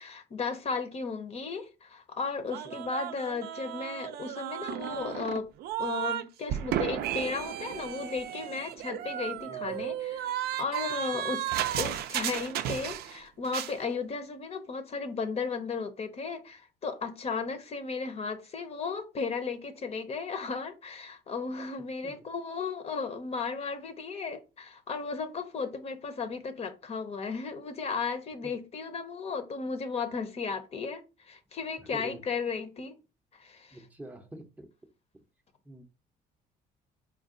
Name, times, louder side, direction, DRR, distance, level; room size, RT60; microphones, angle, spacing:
voice 1, 0.0-5.5 5.8-11.4 11.8-33.0 33.3-33.8, left 4 dB, 40° left, 0.6 m, -35 dB
sound 1, 2.5-6.2 6.5-13.2 13.4-13.8, right 11 dB, 70° right, 0.4 m, -34 dB
voice 2, 9.5-9.9 11.1-11.3 22.0-22.2 31.8-32.2 33.7-34.7 35.7-35.8, right 1 dB, 10° right, 0.5 m, -46 dB
4.5 x 2.2 x 3.7 m
cardioid pair, 110°, 17 cm